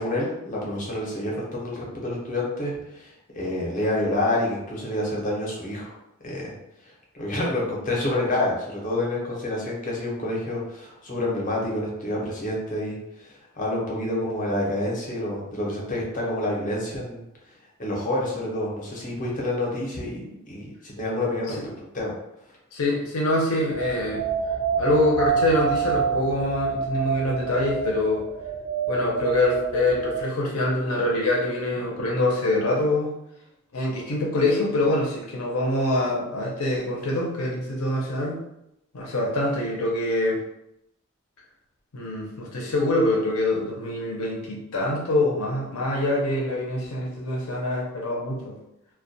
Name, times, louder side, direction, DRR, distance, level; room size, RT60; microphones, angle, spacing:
voice 1, 0.0-6.0 6.2-6.5 7.1-17.2 17.8-22.1, left 1 dB, 40° left, -3 dB, 0.7 m, -28 dB
voice 2, 22.7-24.2 24.8-28.3 28.9-33.1 33.7-38.4 38.9-40.4 41.9-48.6, left 1 dB, 75° left, -3 dB, 0.6 m, -25 dB
sound 1, 23.7-30.2, right 5 dB, 85° right, 0.4 m, -27 dB
2.2 x 2.1 x 2.6 m, 0.85 s
head